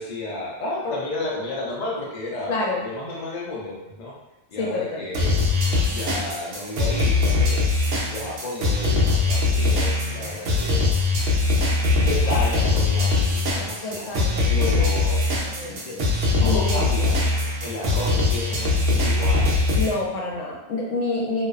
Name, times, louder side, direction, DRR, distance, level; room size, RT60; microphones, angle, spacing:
voice 1, 0.0-2.6 2.8-4.1 4.5-5.4 5.9-7.6 8.1-10.9 12.0-15.2 15.8-16.0 16.4-17.2 17.6-19.5, left 2 dB, 55° left, -4 dB, 0.5 m, -31 dB
voice 2, 2.5-2.8 4.6-5.1 13.8-14.4 15.4-16.1 16.4-16.9 19.7-21.5, left 2 dB, 80° left, -3 dB, 1.0 m, -28 dB
sound 1, 5.1-19.9, left 3 dB, 75° right, 0.9 m, -21 dB
2.6 x 2.0 x 2.3 m, 0.96 s
omnidirectional pair, 1.3 m